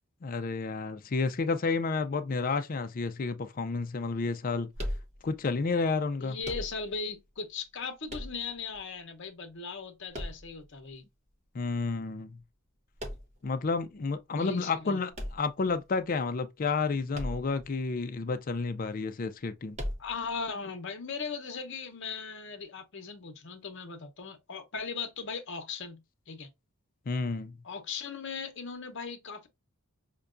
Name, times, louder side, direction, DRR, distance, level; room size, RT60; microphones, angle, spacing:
voice 1, 0.2-4.7 5.2-6.4 11.5-12.4 13.4-19.8 27.1-27.6, left 4 dB, 40° left, 0.4 m, -31 dB
sound 1, 4.7-5.5 6.4-7.1 8.1-8.8 10.1-10.9 13.0-13.5 15.1-16.0 17.1-17.7 18.0-18.1 19.7-20.4, equal, 30° right, 0.6 m, -38 dB
voice 2, 6.2-11.0 14.3-15.0 20.0-26.0 26.3-26.5 27.6-29.5, left 5 dB, 55° left, 0.8 m, -38 dB
5.7 x 2.2 x 2.5 m
head